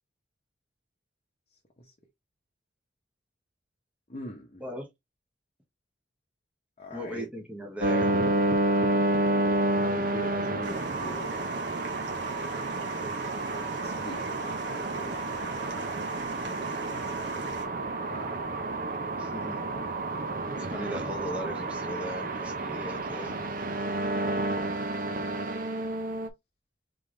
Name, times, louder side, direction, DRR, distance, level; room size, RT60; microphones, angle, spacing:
voice 1, 4.1-4.6 6.8-7.3 9.8-11.7 13.8-15.3 16.9-18.4 23.1-23.4, equal, 35° left, 0.8 m, -42 dB
voice 2, 6.9-8.2 16.4-16.5 19.2-19.7 20.5-23.4 23.6-23.7, equal, 5° right, 1.0 m, -38 dB
sound 1, 7.8-26.3, right 2 dB, 45° right, 0.6 m, -30 dB
sound 2, 10.6-17.7, right 3 dB, 65° right, 1.2 m, -43 dB
3.8 x 3.4 x 3.1 m
head